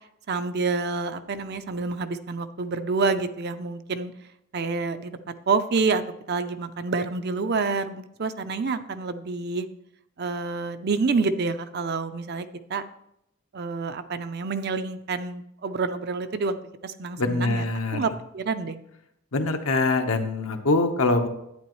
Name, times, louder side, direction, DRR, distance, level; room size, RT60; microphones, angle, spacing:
voice 1, 0.3-4.1 4.5-5.1 5.5-6.0 6.3-9.7 10.2-12.8 13.5-16.6 16.8-17.6 17.9-18.8, right 4 dB, 50° right, 10 dB, 0.5 m, -28 dB
voice 2, 17.2-18.0 19.3-21.3, left 3 dB, 80° left, 5 dB, 1.0 m, -23 dB
11.5 x 9.0 x 3.1 m, 0.79 s
head